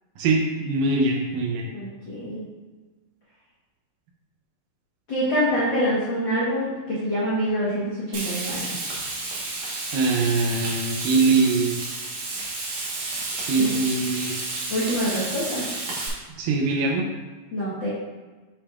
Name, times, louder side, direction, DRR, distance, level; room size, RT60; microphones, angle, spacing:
voice 1, 0.2-1.6 9.9-11.8 13.5-14.3 16.4-17.1, right 3 dB, 75° right, 0 dB, 2.1 m, -22 dB
voice 2, 1.6-2.4 5.1-8.8 13.6-13.7 14.7-15.6 17.5-17.9, equal, 85° left, -9 dB, 1.0 m, -26 dB
Frying (food), 8.1-16.1, right 3 dB, 55° right, 2.2 m, -31 dB
8.2 x 5.8 x 2.4 m, 1.3 s
omnidirectional pair, 4.3 m